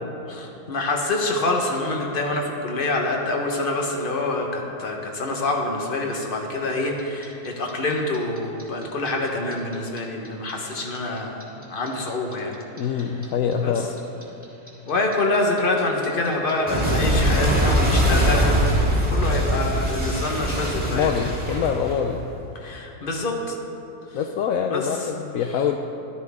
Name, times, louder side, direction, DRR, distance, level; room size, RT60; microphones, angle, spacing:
voice 1, 0.3-12.6 13.6-13.7 14.9-21.1 22.6-23.5 24.7-24.9, left 2 dB, 40° left, 1 dB, 1.4 m, -26 dB
Clock, 7.0-10.0 10.3-13.2 13.5-22.4, equal, 5° right, 1.9 m, -22 dB
voice 2, 12.8-13.9 20.9-22.2 24.1-25.8, left 7 dB, 75° left, 3 dB, 1.0 m, -25 dB
13.5 x 12.5 x 3.6 m, 2.9 s
omnidirectional pair, 1.5 m